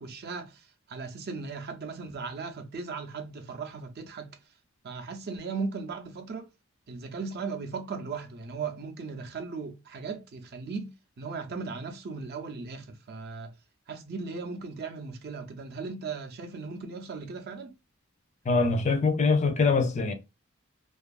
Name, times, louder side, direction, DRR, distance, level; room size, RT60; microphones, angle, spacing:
voice 1, 0.0-4.4 4.8-6.5 6.9-13.5 13.9-17.7, right 4 dB, 50° right, 0.5 m, -37 dB
voice 2, 18.5-20.1, left 4 dB, 35° left, 0.4 m, -23 dB
2.6 x 2.4 x 2.3 m
head